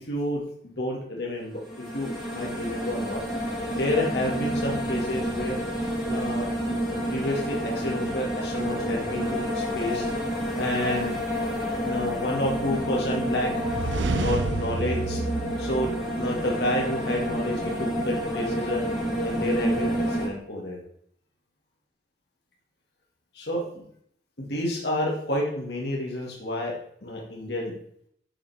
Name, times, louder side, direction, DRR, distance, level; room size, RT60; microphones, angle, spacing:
voice 1, 0.0-1.6 1.9-3.2 3.7-5.6 6.0-10.1 10.6-11.1 11.8-13.5 13.9-15.2 15.6-18.8 19.2-20.8 23.3-23.8 24.4-27.7, left 1 dB, 60° left, -2 dB, 2.0 m, -30 dB
sound 1, 1.5-20.3, equal, ahead, 2.8 m, -29 dB
sound 2, 13.5-16.5, right 3 dB, 75° right, 0.5 m, -30 dB
9.5 x 7.0 x 3.5 m, 0.67 s
head